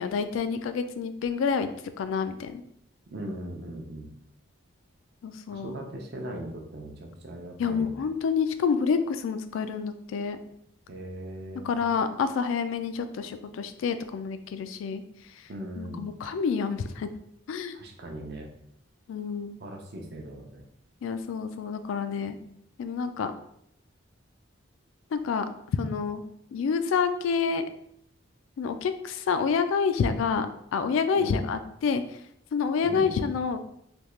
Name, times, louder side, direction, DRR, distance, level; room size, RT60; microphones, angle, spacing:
voice 1, 0.0-1.7 2.0-2.6 5.2-5.7 7.6-10.4 11.6-15.0 15.4-15.5 15.8-17.1 17.5-17.8 19.1-19.6 21.0-22.4 22.8-23.3 25.1-25.5 25.8-26.2 26.5-27.6 28.6-30.5 30.7-32.2 32.5-33.6, left 5 dB, 80° left, 10 dB, 0.3 m, -28 dB
voice 2, 3.1-4.1 5.5-8.1 10.9-11.8 15.5-16.0 17.7-18.5 19.6-20.6 31.2-31.4 32.8-33.2, right 1 dB, 50° right, 1 dB, 0.6 m, -39 dB
3.4 x 2.3 x 3.0 m, 0.72 s
head